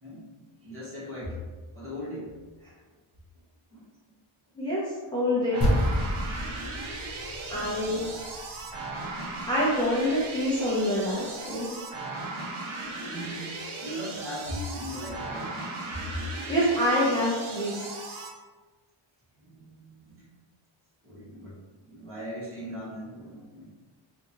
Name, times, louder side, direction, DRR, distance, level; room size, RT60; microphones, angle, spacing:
voice 1, 0.0-2.3 3.7-3.8 7.5-8.2 12.7-15.6 15.9-16.2 19.4-20.3 21.0-23.6, equal, 25° right, -8 dB, 1.2 m, -39 dB
voice 2, 5.1-5.7 7.5-8.0 9.5-11.7 16.5-17.9, equal, 10° left, -9 dB, 0.6 m, -26 dB
sound 1, 5.5-18.3, right 2 dB, 80° right, 0.7 m, -37 dB
sound 2, 5.6-10.1, equal, 30° left, 0.9 m, -30 dB
3.8 x 2.6 x 2.9 m, 1.3 s
wide cardioid pair, 155°, 48 cm